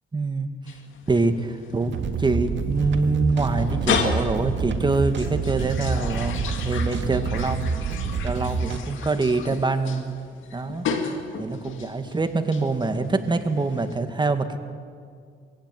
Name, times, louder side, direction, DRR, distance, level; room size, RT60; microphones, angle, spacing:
voice 1, 0.1-0.5 1.1-7.7 8.2-10.1 10.5-10.9 11.4-14.6, right 3 dB, 25° right, 8 dB, 1.9 m, -25 dB
sound 1, 0.7-13.9, left 6 dB, 75° left, 2.4 m, -34 dB
sound 2, 1.8-8.8, right 5 dB, 65° right, 1.8 m, -28 dB
22.5 x 16.0 x 9.3 m, 2.2 s
cardioid pair, 90°, 20 cm